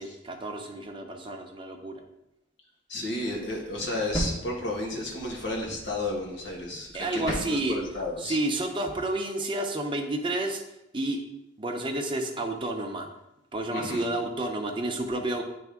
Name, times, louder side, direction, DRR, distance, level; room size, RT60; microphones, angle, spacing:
voice 1, 0.0-2.0 6.9-7.8 8.2-10.6 10.9-11.3 11.6-13.1 13.5-15.4, right 2 dB, 25° right, 3 dB, 0.7 m, -30 dB
voice 2, 2.9-8.4 13.7-14.0, left 2 dB, 80° left, -1 dB, 1.7 m, -32 dB
sound 1, 3.2-8.1, right 1 dB, 20° left, 1.2 m, -38 dB
9.3 x 3.4 x 3.5 m, 0.88 s
head